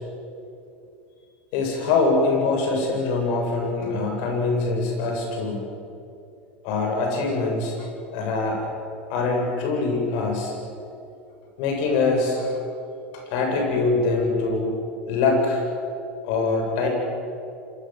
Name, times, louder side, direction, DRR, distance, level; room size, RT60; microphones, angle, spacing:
voice 1, 1.5-5.6 6.6-7.9 8.1-8.7 9.1-10.5 11.6-12.5 13.1-14.7 15.1-15.6 16.2-16.9, left 3 dB, 65° left, 2 dB, 7.9 m, -23 dB
26.5 x 23.5 x 7.8 m, 2.6 s
hypercardioid pair, 80°, 6 cm